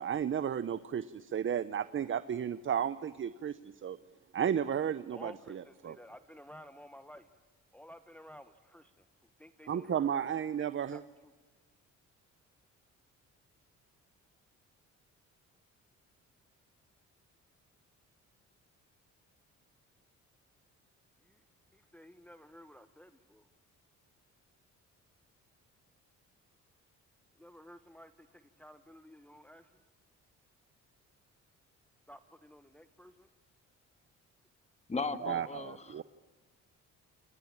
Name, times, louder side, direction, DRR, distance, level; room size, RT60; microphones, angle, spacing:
voice 1, 0.0-4.0 4.3-6.0 9.7-11.0 35.2-36.0, right 8 dB, 40° right, 15 dB, 0.9 m, -33 dB
voice 2, 5.1-7.3 7.7-9.0 9.4-11.3 21.2-21.4 21.7-23.5 27.4-29.7 32.1-33.3, equal, 5° left, 10 dB, 1.2 m, -54 dB
voice 3, 34.9-36.0, left 4 dB, 20° left, 11 dB, 1.8 m, -37 dB
29.0 x 19.5 x 8.8 m, 1.3 s
cardioid pair, 90°, 30 cm